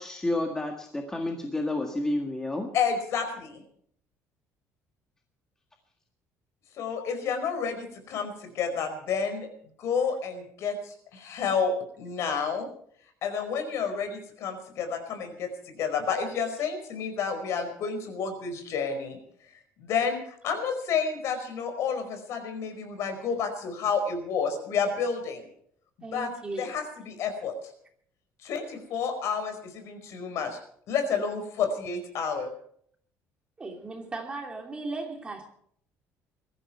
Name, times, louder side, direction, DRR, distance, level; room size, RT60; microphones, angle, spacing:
voice 1, 0.0-2.7, left 2 dB, 10° left, 2 dB, 1.7 m, -30 dB
voice 2, 2.7-3.6 6.8-9.5 9.8-12.7 13.2-19.2 19.8-25.5 26.1-26.3 26.6-27.5 28.4-30.6 30.9-32.5, left 6 dB, 60° left, 7 dB, 5.0 m, -30 dB
voice 3, 26.0-26.7 33.6-35.5, right 3 dB, 15° right, 3 dB, 2.9 m, -37 dB
22.0 x 14.0 x 4.5 m, 0.63 s
cardioid pair, 160°, 6 cm